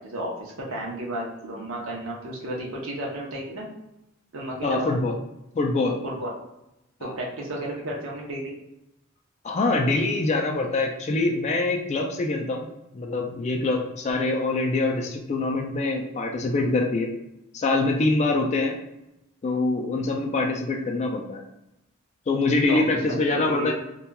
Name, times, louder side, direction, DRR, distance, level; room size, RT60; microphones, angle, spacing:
voice 1, 0.0-3.7 4.3-4.9 6.0-6.3 7.0-8.5 14.1-14.3 22.7-22.8 23.1-23.7, right 1 dB, 80° right, -3 dB, 0.7 m, -33 dB
voice 2, 4.6-5.1 5.5-6.0 7.0-7.1 9.4-12.7 12.9-17.1 17.5-18.8 19.4-21.4 22.3-23.7, left 2 dB, 35° left, 1 dB, 0.3 m, -24 dB
2.8 x 2.2 x 2.2 m, 0.89 s
head